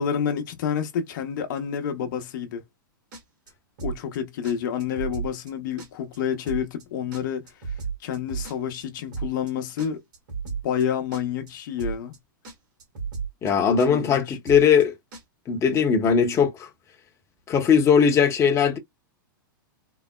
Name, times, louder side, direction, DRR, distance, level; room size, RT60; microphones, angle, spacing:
voice 1, 0.0-2.6 3.8-7.7 8.0-10.0 10.4-12.2 13.9-14.4, left 8 dB, 60° left, 0.9 m, -29 dB
sound 1, 3.1-3.5 3.8-4.2 4.4-4.5 4.8-5.5 5.8-6.2 6.4-6.8 7.1-8.8 9.1-9.5 9.8-10.8 11.1-11.5 11.8-12.2 12.4-12.5 12.8-13.5 13.8-14.2 14.4-14.8 15.1-15.2, right 5 dB, 60° right, 2.0 m, -33 dB
voice 2, 13.4-14.9 15.5-16.7 17.5-18.8, left 7 dB, 25° left, 0.9 m, -19 dB
4.0 x 2.0 x 2.2 m
hypercardioid pair, 110°, 12 cm